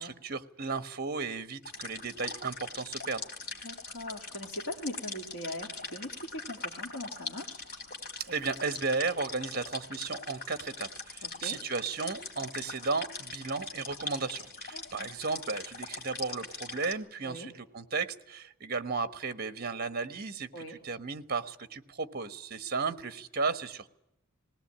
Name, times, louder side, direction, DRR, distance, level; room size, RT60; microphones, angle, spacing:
voice 1, 0.0-3.2 8.2-23.9, right 4 dB, 45° right, 11 dB, 1.2 m, -34 dB
sound 1, 1.6-16.9, left 3 dB, 45° left, 3.0 m, -42 dB
voice 2, 3.6-7.6 11.2-11.6 14.7-15.1 17.2-17.5 20.5-20.8, left 1 dB, 70° left, 1 dB, 2.2 m, -41 dB
20.0 x 18.0 x 8.7 m, 0.85 s
head